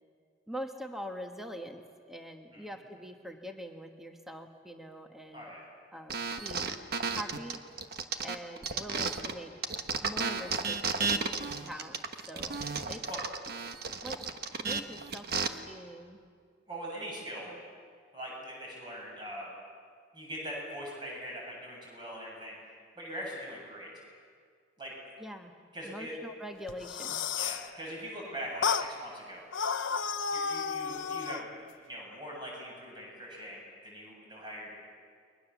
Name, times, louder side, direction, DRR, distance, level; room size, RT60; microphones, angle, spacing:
voice 1, 0.5-1.8 2.1-5.5 5.9-6.6 7.1-7.6 8.2-9.5 10.0-12.0 12.3-13.0 14.0-14.2 14.6-16.2 17.4-17.6 25.2-25.6 25.8-27.2, equal, ahead, 4 dB, 1.3 m, -43 dB
sound 1, 6.1-9.3 9.6-15.5, right 5 dB, 55° right, 1.3 m, -33 dB
voice 2, 16.7-17.5 18.1-19.5 20.1-22.5 23.0-23.9 24.8-24.9 25.7-26.1 27.4-29.4 30.3-34.7, equal, 25° right, -3 dB, 7.8 m, -42 dB
sound 2, 26.7-27.7 28.6-28.9 29.5-31.5, left 6 dB, 80° left, 0.9 m, -32 dB
30.0 x 23.0 x 7.2 m, 2.1 s
head